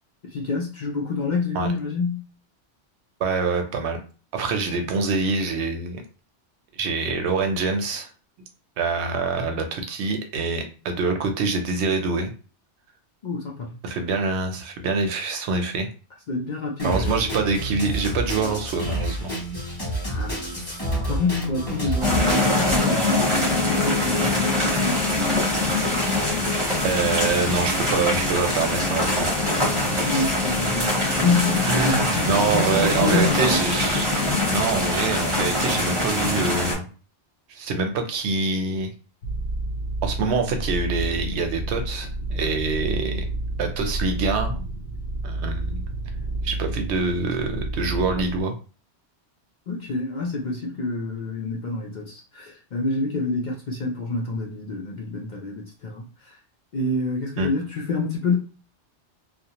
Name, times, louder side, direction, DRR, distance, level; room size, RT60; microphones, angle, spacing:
voice 1, 0.3-2.2 13.2-13.7 16.3-17.2 20.2-20.4 21.1-25.0 29.6-33.7 49.7-56.3 56.7-58.4, left 3 dB, 55° left, 0.5 m, -27 dB
voice 2, 3.2-4.0 4.3-6.0 6.7-8.1 8.8-12.3 13.8-15.9 16.8-19.3 26.8-29.3 29.8-30.0 31.6-34.1 34.5-36.9 37.5-38.9 40.0-43.3 43.6-44.7 45.2-45.8 46.4-48.5 57.4-57.5, right 4 dB, 75° right, 0.8 m, -25 dB
Drum kit, 16.8-22.8, right 1 dB, 20° left, 1.0 m, -28 dB
sound 1, 22.0-36.7, left 2 dB, 30° right, 0.7 m, -23 dB
sound 2, 39.2-48.4, right 2 dB, 85° left, 0.9 m, -30 dB
2.5 x 2.0 x 2.8 m
omnidirectional pair, 1.2 m